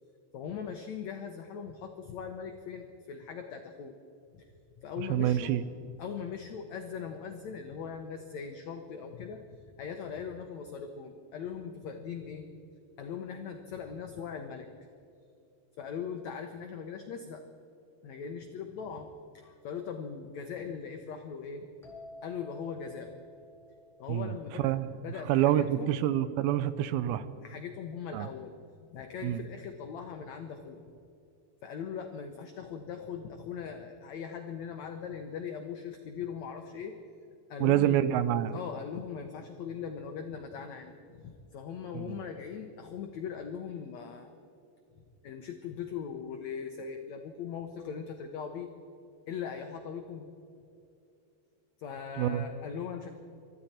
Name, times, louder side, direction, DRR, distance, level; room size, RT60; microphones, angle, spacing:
voice 1, 0.3-4.0 4.3-4.5 4.8-5.6 6.0-12.5 13.0-14.7 15.8-17.4 18.0-19.1 19.3-21.6 22.2-23.2 24.0-24.7 25.0-26.0 27.4-28.5 28.9-30.8 31.6-37.0 37.5-38.0 38.5-44.3 44.9-48.7 49.3-50.3 51.8-53.1, left 7 dB, 80° left, 5 dB, 1.6 m, -40 dB
voice 2, 5.1-5.6 24.1-24.3 24.6-24.9 25.3-27.2 28.1-28.3 29.2-29.4 37.6-38.6 41.9-42.1 52.2-52.4, right 12 dB, 80° right, 13 dB, 2.4 m, -27 dB
sound 1, 21.8-25.4, left 1 dB, ahead, 3.3 m, -52 dB
24.5 x 13.5 x 4.3 m, 2.7 s
omnidirectional pair, 4.5 m